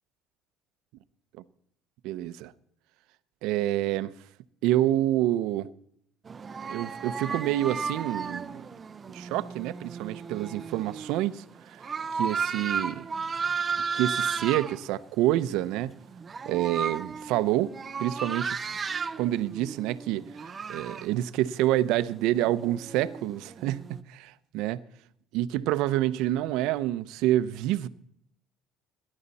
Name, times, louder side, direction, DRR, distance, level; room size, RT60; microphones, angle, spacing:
voice 1, 2.0-2.5 3.4-4.1 4.6-5.7 6.7-8.6 9.1-11.4 12.1-13.1 13.9-15.9 16.5-17.7 18.0-18.6 19.2-20.3 20.7-24.8 25.3-27.9, right 14 dB, 75° right, 0.6 m, -27 dB
sound 1, 6.3-14.8 15.4-15.7 16.0-21.1 22.1-24.0, right 5 dB, 25° right, 0.6 m, -34 dB
19.0 x 11.0 x 4.2 m
cardioid pair, 140°, 0 cm